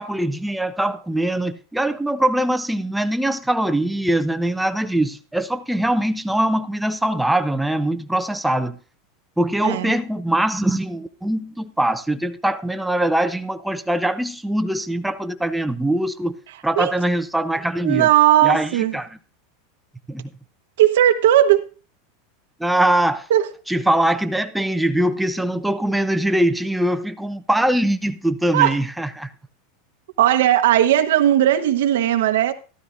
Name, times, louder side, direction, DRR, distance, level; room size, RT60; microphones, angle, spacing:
voice 1, 0.0-8.8 9.4-16.4 16.6-18.1 18.4-19.1 20.1-20.3 22.6-23.3 23.7-29.3, right 1 dB, 5° right, 0.7 m, -22 dB
voice 2, 9.6-9.9 16.8-16.9 17.8-18.9 20.8-21.7 23.3-23.5 28.5-28.8 30.2-32.5, right 12 dB, 80° right, 1.0 m, -17 dB
13.5 x 13.0 x 2.6 m
supercardioid pair, 145°, 0 cm